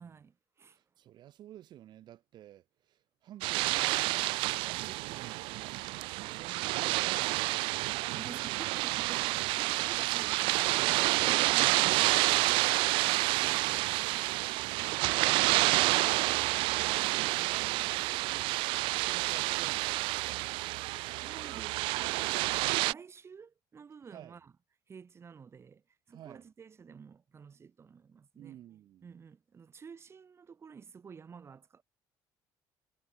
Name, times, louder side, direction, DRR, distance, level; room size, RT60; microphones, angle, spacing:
voice 1, 0.0-0.8 8.1-14.5 21.2-24.5 24.9-28.6 29.0-31.8, right 6 dB, 30° right, 3.6 m, -51 dB
voice 2, 0.7-4.3 4.6-7.7 8.3-8.9 13.4-15.1 16.6-20.7 24.1-24.4 26.1-26.4 28.4-29.1, right 12 dB, 60° right, 3.4 m, -53 dB
sound 1, 3.4-22.9, right 23 dB, 90° right, 0.6 m, -29 dB
cardioid pair, 125°, 9 cm